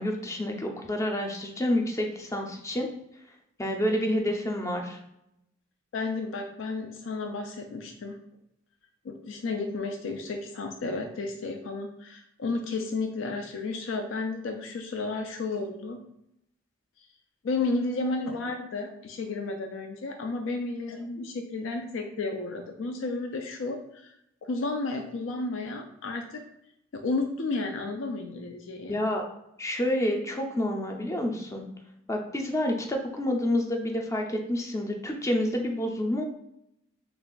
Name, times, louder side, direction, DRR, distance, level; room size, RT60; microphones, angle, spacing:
voice 1, 0.0-2.9 3.6-5.0 28.9-29.2 29.6-31.7 32.1-36.2, left 1 dB, 15° left, 2 dB, 0.5 m, -28 dB
voice 2, 5.9-8.2 9.0-16.0 17.4-24.1 24.5-26.4 26.9-29.0, left 3 dB, 75° left, 4 dB, 0.4 m, -32 dB
3.3 x 2.4 x 3.7 m, 0.80 s
head